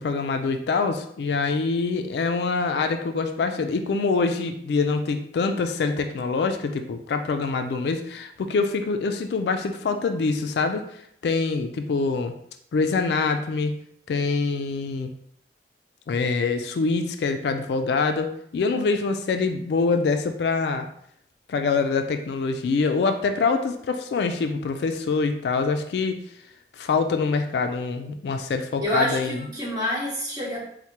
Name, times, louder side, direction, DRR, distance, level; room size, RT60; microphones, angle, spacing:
voice 1, 0.0-10.9 11.2-12.3 12.7-13.8 14.1-15.1 16.1-20.9 21.5-26.2 26.8-29.5, left 4 dB, 70° left, 7 dB, 0.3 m, -25 dB
voice 2, 28.8-30.6, left 1 dB, 25° right, -8 dB, 1.4 m, -27 dB
4.5 x 2.1 x 2.8 m, 0.70 s
head